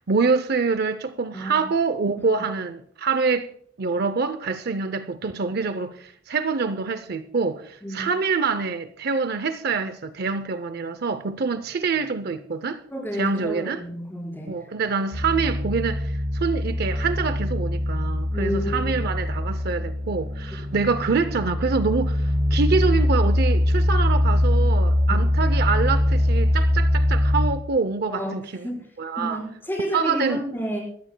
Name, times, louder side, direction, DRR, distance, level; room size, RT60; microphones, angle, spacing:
voice 1, 0.0-3.5 3.8-12.8 13.1-13.8 14.5-28.6 29.0-29.4 29.9-30.4, right 4 dB, 55° right, 0.6 m, -25 dB
voice 2, 1.3-1.6 7.8-8.1 12.9-14.6 18.3-18.9 19.6-19.7 25.1-25.2 28.1-28.4 28.6-28.8 29.2-30.8, equal, 10° left, 4.7 m, -30 dB
sound 1, 15.1-27.5, left 1 dB, 85° right, 4.4 m, -22 dB
24.0 x 14.0 x 2.2 m
head